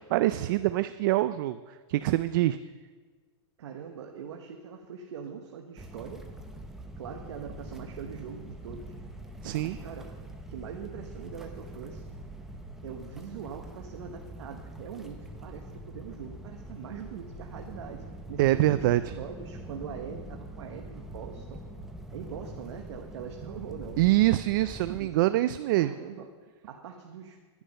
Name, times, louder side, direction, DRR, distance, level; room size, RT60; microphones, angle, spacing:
voice 1, 0.1-1.6 1.9-2.6 9.4-9.8 18.4-19.1 24.0-25.9, right 16 dB, 45° right, 13 dB, 0.4 m, -24 dB
voice 2, 3.6-6.3 7.0-8.9 9.6-10.1 10.5-12.0 12.8-18.0 18.3-21.6 22.1-24.0 24.9-25.2 25.7-26.3 26.7-27.4, right 7 dB, 70° right, 3 dB, 1.2 m, -42 dB
sound 1, 5.8-25.0, right 1 dB, ahead, 0.8 m, -44 dB
11.0 x 10.0 x 5.4 m, 1.4 s
supercardioid pair, 155°, 15 cm